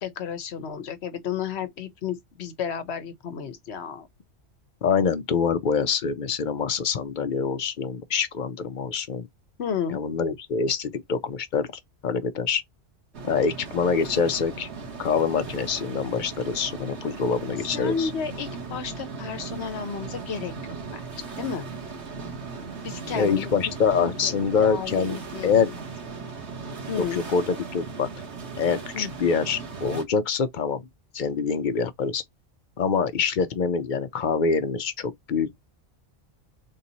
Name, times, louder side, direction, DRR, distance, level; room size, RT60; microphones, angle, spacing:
voice 1, 0.0-4.1 9.6-10.0 17.7-20.5 20.9-21.6 22.8-23.5 24.2-24.3 24.6-25.7 26.9-27.2 28.9-29.1, left 7 dB, 70° left, 1.0 m, -32 dB
voice 2, 4.8-9.3 9.9-11.7 12.0-12.6 13.2-14.7 15.0-18.1 23.1-25.2 25.4-25.7 27.0-28.1 28.6-30.8 31.1-32.2 32.8-35.6, left 6 dB, 50° left, 0.6 m, -25 dB
sound 1, 13.1-30.0, right 4 dB, 70° right, 1.5 m, -37 dB
3.6 x 2.8 x 4.0 m
omnidirectional pair, 1.2 m